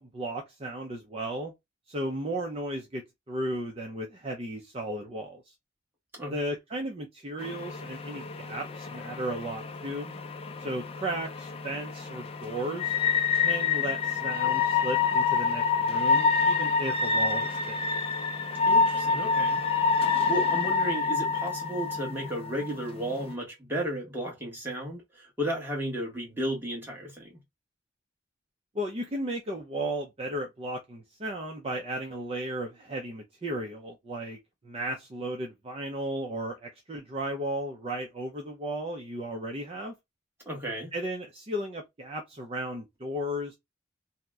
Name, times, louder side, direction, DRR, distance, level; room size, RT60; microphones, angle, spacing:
voice 1, 0.0-1.5 1.9-5.5 6.3-10.2 10.6-13.0 13.4-17.8 28.7-34.4 34.6-39.9 40.9-43.6, right 1 dB, 30° right, 0.5 m, -35 dB
sound 1, 7.4-23.3, left 5 dB, 30° left, 0.4 m, -27 dB
voice 2, 18.7-19.6 20.0-27.4 40.4-40.9, equal, 10° right, 1.2 m, -34 dB
2.7 x 2.0 x 3.4 m
head